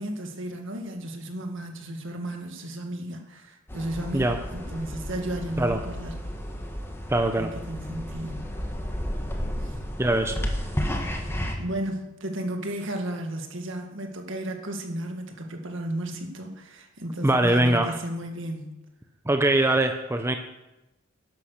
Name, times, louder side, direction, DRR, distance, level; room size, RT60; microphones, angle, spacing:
voice 1, 0.0-6.1 7.3-8.5 9.6-9.8 11.3-18.7, right 1 dB, 60° right, 3 dB, 2.0 m, -34 dB
sound 1, 3.7-11.6, equal, 10° left, 1.3 m, -32 dB
voice 2, 7.1-7.5 10.0-10.4 17.2-18.0 19.3-20.3, right 1 dB, 10° right, 6 dB, 0.6 m, -22 dB
11.5 x 10.0 x 6.6 m, 0.96 s
head